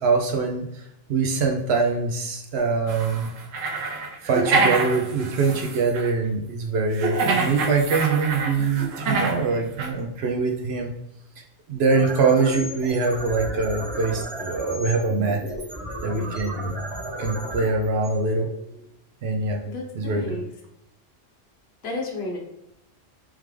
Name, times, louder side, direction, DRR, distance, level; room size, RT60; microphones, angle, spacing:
voice 1, 0.0-3.3 4.2-10.9 11.7-15.4 16.0-16.7 17.2-18.5 19.2-19.6 19.9-20.4, right 4 dB, 65° right, 2 dB, 0.7 m, -23 dB
sound 1, 2.9-6.1 6.9-9.4 9.8-9.9, right 3 dB, 80° right, 1.0 m, -26 dB
sound 2, 11.7-18.8, equal, 30° right, 1.1 m, -34 dB
voice 2, 19.7-20.5 21.8-22.4, left 2 dB, 55° left, -1 dB, 1.2 m, -32 dB
3.6 x 3.4 x 3.1 m, 0.83 s
omnidirectional pair, 1.3 m